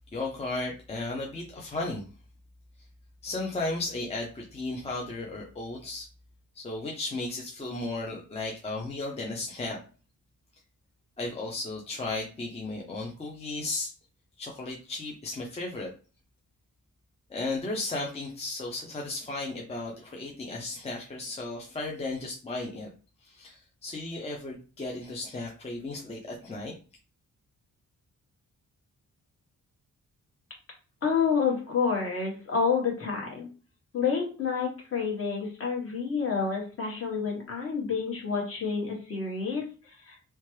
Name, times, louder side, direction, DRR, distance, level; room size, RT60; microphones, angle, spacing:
voice 1, 0.1-2.0 3.2-6.1 6.5-9.8 11.2-13.9 14.4-15.9 17.3-22.9 23.2-26.7, left 2 dB, 20° left, -2 dB, 0.5 m, -35 dB
voice 2, 31.0-33.5 33.9-40.2, left 5 dB, 45° left, -2 dB, 1.2 m, -29 dB
2.8 x 2.2 x 3.1 m, 0.36 s
wide cardioid pair, 160°, 32 cm